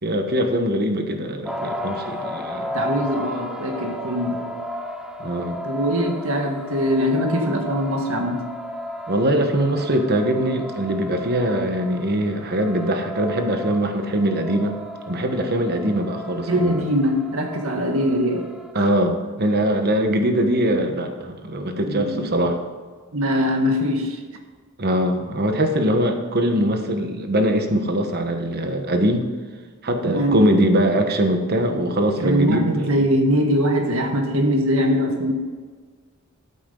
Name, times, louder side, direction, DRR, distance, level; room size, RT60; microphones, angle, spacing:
voice 1, 0.0-2.7 5.2-5.6 9.1-14.8 15.1-16.8 18.7-22.6 24.8-29.3 29.8-33.1, right 1 dB, 45° right, 5 dB, 1.3 m, -22 dB
sound 1, 1.4-18.7, left 1 dB, 5° right, 0.8 m, -34 dB
voice 2, 2.7-4.5 5.6-8.5 16.5-18.9 21.8-22.3 23.1-24.2 30.0-30.5 32.2-35.3, equal, 70° right, 3 dB, 1.6 m, -22 dB
14.0 x 8.4 x 3.9 m, 1.5 s
head